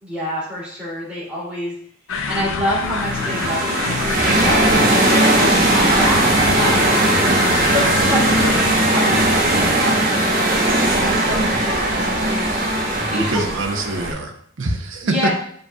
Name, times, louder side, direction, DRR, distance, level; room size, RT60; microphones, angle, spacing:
voice 1, 0.0-1.8 2.2-6.3 6.5-12.6 13.1-13.6 15.0-15.3, left 1 dB, 5° right, -7 dB, 2.7 m, -27 dB
sound 1, 2.1-8.7, left 4 dB, 75° left, 0.5 m, -27 dB
sound 2, 2.8-14.1, right 1 dB, 45° right, 1.0 m, -18 dB
voice 2, 13.1-15.3, right 2 dB, 70° right, 4 dB, 0.8 m, -24 dB
7.7 x 5.3 x 2.3 m, 0.64 s
head